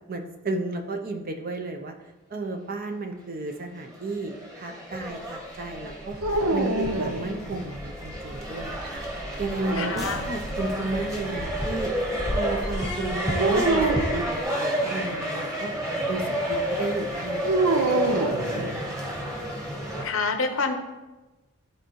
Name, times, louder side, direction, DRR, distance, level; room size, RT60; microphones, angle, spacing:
voice 1, 0.1-1.9 2.3-6.2 6.5-11.9 12.3-13.9 14.1-15.7 16.1-18.2 18.6-19.2, right 2 dB, 40° right, 5 dB, 0.6 m, -33 dB
sound 1, 3.9-20.0, equal, 15° right, 1.3 m, -31 dB
sound 2, 4.9-14.4, equal, ahead, 1.0 m, -36 dB
sound 3, 6.2-7.8 9.4-10.5 13.4-14.2 17.4-19.1, right 2 dB, 80° right, 0.8 m, -26 dB
voice 2, 9.8-10.2 20.0-20.7, left 4 dB, 65° left, 6 dB, 0.8 m, -27 dB
12.5 x 4.4 x 3.1 m, 1.1 s
head